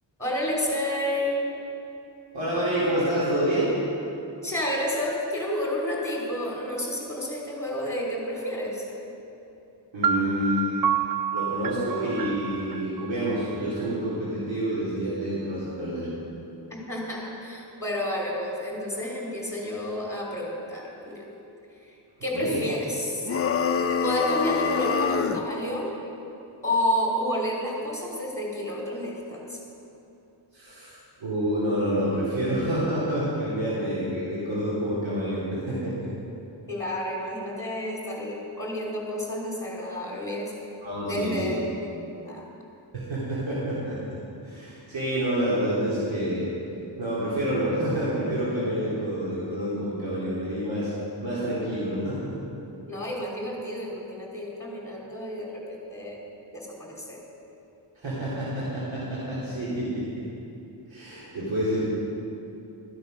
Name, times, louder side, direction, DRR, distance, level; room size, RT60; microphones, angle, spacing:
voice 1, 0.2-1.4 4.4-8.9 16.7-21.3 21.9-22.0 22.2-23.3 24.0-25.9 26.6-29.6 36.7-40.5 41.1-41.7 42.2-42.4 52.9-56.2 56.5-57.2, left 1 dB, 5° left, -3 dB, 3.0 m, -30 dB
voice 2, 2.3-3.7 9.9-16.1 22.3-22.6 30.5-35.9 40.8-41.6 42.9-44.2 44.4-46.5 47.0-50.9 51.2-52.3 57.9-60.1 60.9-61.8, right 1 dB, 80° right, -9 dB, 3.1 m, -28 dB
sound 1, 10.0-13.9, right 7 dB, 50° right, 0.5 m, -29 dB
sound 2, 23.2-25.5, left 6 dB, 30° left, 0.5 m, -25 dB
13.5 x 10.0 x 5.2 m, 2.8 s
wide cardioid pair, 125°, 45 cm